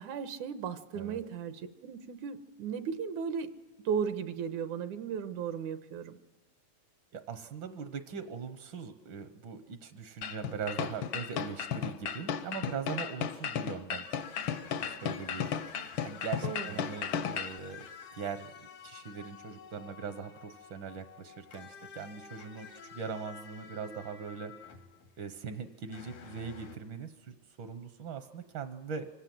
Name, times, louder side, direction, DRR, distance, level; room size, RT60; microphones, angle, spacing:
voice 1, 0.0-3.5 3.9-6.2 16.4-16.8, right 7 dB, 85° right, 10 dB, 2.4 m, -36 dB
voice 2, 7.1-14.1 14.6-15.5 16.0-24.7 25.2-29.1, right 6 dB, 70° right, 9 dB, 1.1 m, -41 dB
sound 1, 10.2-17.6, left 7 dB, 70° left, 1.2 m, -35 dB
sound 2, 14.0-25.2 25.6-26.8, left 6 dB, 90° left, 3.4 m, -50 dB
25.5 x 17.5 x 7.7 m, 1.2 s
omnidirectional pair, 3.4 m